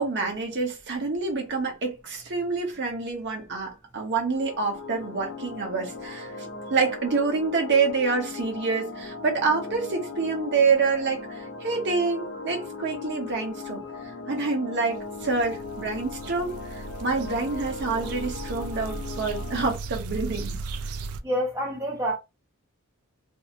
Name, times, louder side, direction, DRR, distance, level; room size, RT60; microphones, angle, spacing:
voice 1, 0.0-20.6, right 4 dB, 55° right, 0.9 m, -27 dB
sound 1, 4.3-19.7, left 4 dB, 65° left, 0.6 m, -38 dB
sound 2, 14.9-21.2, right 3 dB, 85° right, 0.4 m, -36 dB
voice 2, 21.2-22.2, equal, 15° right, 0.4 m, -28 dB
2.7 x 2.1 x 2.7 m
head